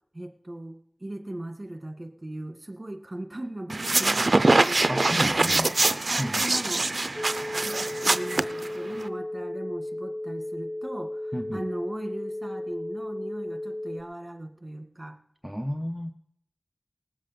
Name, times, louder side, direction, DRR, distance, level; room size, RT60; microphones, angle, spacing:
voice 1, 0.1-4.8 5.4-5.6 6.1-6.8 7.6-15.2, right 1 dB, 30° right, 6 dB, 1.8 m, -38 dB
sound 1, 3.7-9.1, right 2 dB, 60° right, 0.5 m, -24 dB
voice 2, 4.9-5.7 6.2-6.4 11.3-11.6 15.4-16.1, equal, 5° right, 4 dB, 0.7 m, -31 dB
sound 2, 7.2-14.0, left 1 dB, 30° left, 0.8 m, -35 dB
19.5 x 7.4 x 5.2 m, 0.69 s
wide cardioid pair, 45°, 0 cm